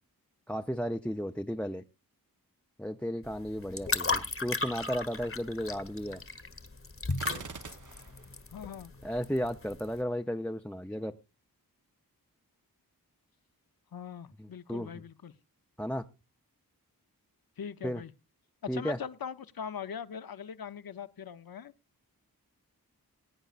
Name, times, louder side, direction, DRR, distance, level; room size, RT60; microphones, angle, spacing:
voice 1, 0.5-1.8 2.8-6.2 9.0-11.1 14.4-14.9 15.8-16.0 17.8-18.0 18.7-19.0, equal, 5° left, 0.6 m, -34 dB
sound 1, 3.2-10.0, left 3 dB, 35° left, 1.1 m, -36 dB
Gunshot gunfire, 7.1-8.3, right 5 dB, 55° right, 0.9 m, -45 dB
voice 2, 8.5-8.9 13.9-15.3 17.6-18.1 18.7-21.7, left 7 dB, 70° left, 0.7 m, -41 dB
21.5 x 9.0 x 2.5 m
cardioid pair, 45°, 37 cm